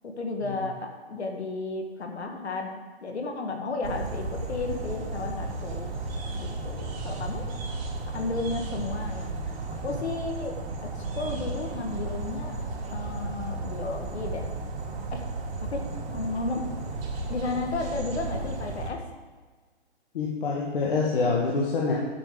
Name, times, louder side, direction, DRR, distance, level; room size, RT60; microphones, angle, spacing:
voice 1, 0.0-5.9 6.3-7.4 8.1-9.3 9.8-10.9 11.2-12.6 12.9-14.5 15.1-15.2 15.6-16.6 17.3-19.0, left 3 dB, 85° left, 4 dB, 1.9 m, -33 dB
sound 1, 3.8-18.9, right 3 dB, 60° right, 2.6 m, -34 dB
voice 2, 20.1-21.9, left 4 dB, 55° left, -3 dB, 1.7 m, -26 dB
10.5 x 6.6 x 5.1 m, 1.4 s
hypercardioid pair, 155°, 32 cm